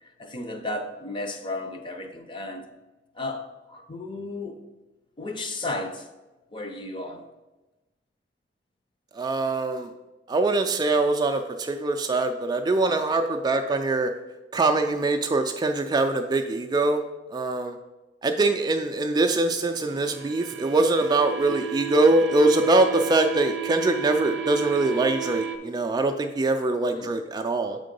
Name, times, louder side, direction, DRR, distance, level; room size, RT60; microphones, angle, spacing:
voice 1, 0.0-2.6 3.1-4.6 5.2-6.1 6.5-7.2 26.9-27.1, left 2 dB, 25° left, 0.6 m, -34 dB
voice 2, 9.1-9.9 10.3-14.1 14.5-17.0 17.3-17.8 18.2-27.8, right 2 dB, 20° right, 0.3 m, -23 dB
sound 1, 19.6-25.6, right 11 dB, 70° right, 0.6 m, -34 dB
7.1 x 3.8 x 5.2 m
head